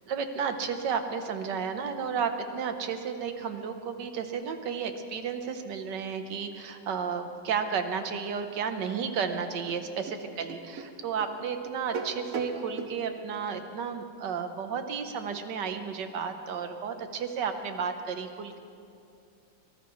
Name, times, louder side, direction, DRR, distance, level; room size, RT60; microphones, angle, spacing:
voice 1, 0.1-18.6, right 6 dB, 80° right, 7 dB, 1.6 m, -32 dB
sound 1, 9.7-13.0, right 4 dB, 55° right, 1.4 m, -38 dB
24.0 x 19.0 x 3.2 m, 2.6 s
omnidirectional pair, 1.9 m